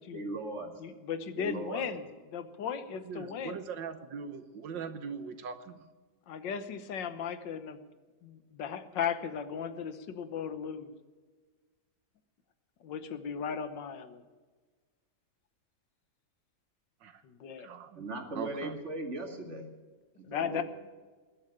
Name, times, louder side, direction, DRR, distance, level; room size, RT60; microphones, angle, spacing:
voice 1, 0.1-0.7 1.4-1.8 17.9-19.7 20.2-20.6, right 2 dB, 40° right, 3 dB, 2.4 m, -38 dB
voice 2, 0.8-3.6 6.3-7.8 8.2-10.9 12.8-14.2 17.2-17.7 20.2-20.6, left 7 dB, 80° left, 11 dB, 1.7 m, -36 dB
voice 3, 2.9-5.8 17.0-17.2 17.6-18.0 18.3-18.8, right 6 dB, 85° right, 10 dB, 1.8 m, -41 dB
20.0 x 7.6 x 8.9 m, 1.4 s
omnidirectional pair, 1.9 m